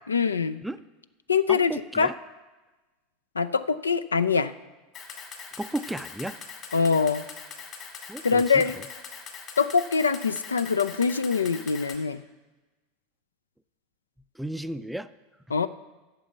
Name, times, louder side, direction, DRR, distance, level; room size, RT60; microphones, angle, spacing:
voice 1, 0.1-0.6 1.3-2.1 3.4-4.5 6.7-7.2 8.2-8.8 9.6-12.2 15.5-15.7, left 5 dB, 80° left, 14 dB, 0.4 m, -24 dB
voice 2, 1.5-2.1 5.6-6.4 8.1-8.6 14.4-15.1, right 1 dB, 5° right, 13 dB, 0.4 m, -34 dB
Camera, 4.9-12.0, left 6 dB, 40° left, 2.1 m, -42 dB
8.8 x 6.9 x 7.9 m, 1.2 s
figure-of-eight pair, 80°, 0 cm